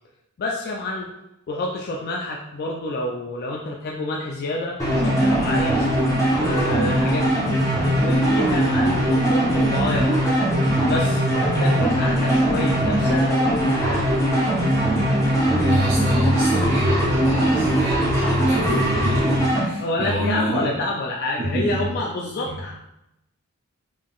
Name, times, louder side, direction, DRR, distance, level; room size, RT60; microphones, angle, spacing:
voice 1, 0.4-1.1 1.5-5.9 6.4-7.5 8.0-10.4 10.8-14.1 19.8-22.7, left 2 dB, 45° left, -1 dB, 0.3 m, -28 dB
sound 1, 4.8-19.7, right 1 dB, 15° left, 0.9 m, -20 dB
voice 2, 15.5-20.7 21.4-21.9 22.4-22.6, equal, 30° right, -5 dB, 0.5 m, -26 dB
3.8 x 3.5 x 2.4 m, 0.88 s
head